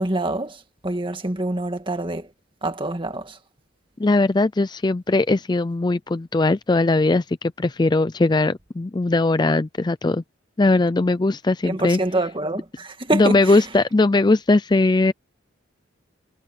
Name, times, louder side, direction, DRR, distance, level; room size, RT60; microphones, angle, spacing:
voice 1, 0.0-2.3 2.6-3.4 11.6-13.7, right 2 dB, 25° right, 2.0 m, -26 dB
voice 2, 4.0-10.2 10.6-12.0 13.1-15.1, left 2 dB, 20° left, 0.4 m, -19 dB
head